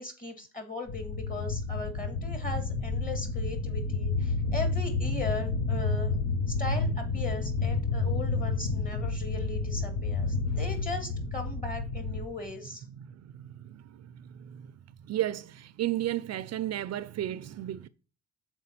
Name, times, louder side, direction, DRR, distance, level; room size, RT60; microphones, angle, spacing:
voice 1, 0.0-6.1 6.5-12.8, left 2 dB, 30° left, 2.4 m, -38 dB
sound 1, 0.9-12.3, left 3 dB, 65° left, 0.9 m, -30 dB
voice 2, 12.9-17.9, right 13 dB, 55° right, 0.5 m, -34 dB
6.7 x 4.5 x 5.8 m
cardioid pair, 90°, 30 cm